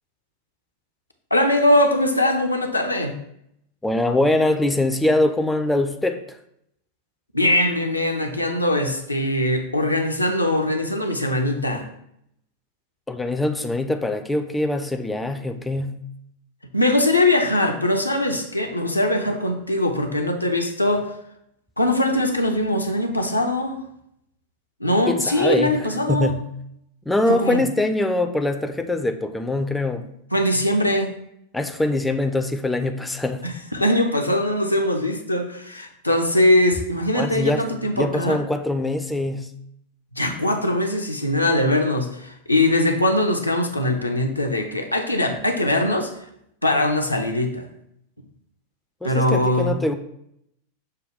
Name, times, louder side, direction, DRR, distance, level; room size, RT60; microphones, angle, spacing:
voice 1, 1.3-3.1 7.3-11.8 16.7-21.1 21.8-23.8 24.8-26.3 27.3-27.6 30.3-31.1 33.4-38.4 40.1-46.1 46.6-47.7 49.0-49.8, left 1 dB, 85° left, 3 dB, 0.5 m, -21 dB
voice 2, 3.8-6.4 13.1-16.0 25.1-26.5 27.1-30.1 31.5-33.5 37.1-39.5 49.0-49.9, left 2 dB, 5° left, 6 dB, 0.3 m, -23 dB
6.4 x 2.2 x 3.5 m, 0.75 s
figure-of-eight pair, 90°, 0 cm